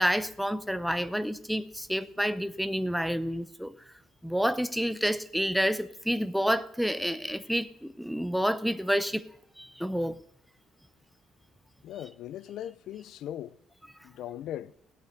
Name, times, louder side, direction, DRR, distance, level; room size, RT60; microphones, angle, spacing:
voice 1, 0.0-3.7 4.2-9.2 9.6-10.2, equal, ahead, 0.5 m, -29 dB
voice 2, 11.8-13.6 14.0-14.7, left 11 dB, 60° left, 0.5 m, -39 dB
16.5 x 8.4 x 6.6 m
cardioid pair, 160°, 0 cm